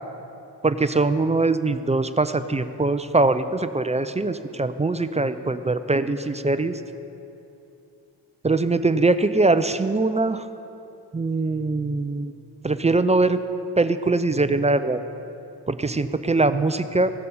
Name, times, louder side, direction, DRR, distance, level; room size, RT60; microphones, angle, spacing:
voice 1, 0.6-6.8 8.4-10.4 11.1-12.3 12.6-13.4 13.8-15.0 15.7-17.1, right 3 dB, 15° right, 11 dB, 0.4 m, -22 dB
15.5 x 6.5 x 5.5 m, 2.8 s
cardioid pair, 60°, 42 cm